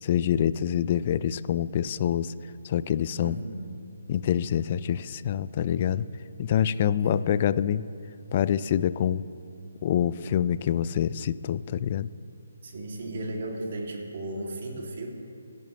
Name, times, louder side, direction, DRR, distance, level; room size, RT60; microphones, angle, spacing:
voice 1, 0.0-2.3 2.6-3.4 4.1-6.1 6.4-7.8 8.3-9.2 9.8-12.1, left 9 dB, 40° left, 16 dB, 0.4 m, -26 dB
voice 2, 3.2-3.7 6.7-7.3 12.6-15.1, right 1 dB, 55° right, -1 dB, 2.9 m, -35 dB
25.0 x 10.5 x 3.3 m, 2.6 s
figure-of-eight pair, 150°, 0 cm